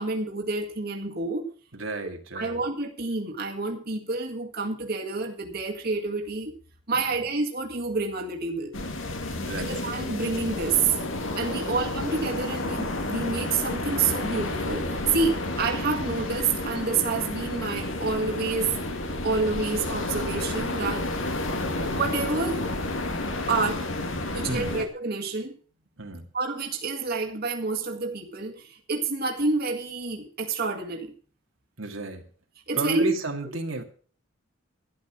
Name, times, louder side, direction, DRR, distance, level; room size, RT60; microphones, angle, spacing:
voice 1, 0.0-1.5 2.4-6.5 6.9-8.7 9.6-11.0 11.3-18.7 19.2-21.1 21.9-23.0 23.5-23.9 24.3-25.6 26.3-31.1 32.7-33.1, right 4 dB, 50° right, 1 dB, 2.0 m, -28 dB
voice 2, 1.7-2.6 6.9-7.2 9.3-9.8 11.5-11.8 15.4-15.6 19.2-19.3 24.2-24.8 26.0-26.3 31.8-32.3 32.7-33.8, right 2 dB, 80° right, 3 dB, 2.2 m, -34 dB
sound 1, 8.7-24.9, left 2 dB, 75° left, 2.3 m, -31 dB
12.5 x 10.5 x 6.2 m, 0.43 s
head